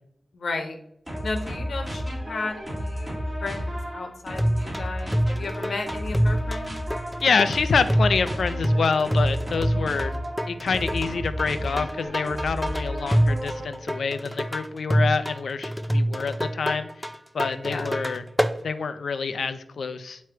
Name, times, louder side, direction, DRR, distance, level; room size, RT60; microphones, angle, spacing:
voice 1, 0.3-0.8 1.2-3.1 3.4-6.8 9.7-10.0 15.9-16.2 17.6-17.9, left 3 dB, 70° left, 4 dB, 1.1 m, -34 dB
sound 1, 1.1-13.8, equal, 15° right, 2.0 m, -32 dB
sound 2, 4.4-18.6, equal, ahead, 0.4 m, -26 dB
voice 2, 7.2-10.1 10.5-16.9 17.3-18.2 18.6-20.2, left 5 dB, 85° left, 11 dB, 0.5 m, -26 dB
9.3 x 3.1 x 4.5 m, 0.76 s
wide cardioid pair, 135°, 0 cm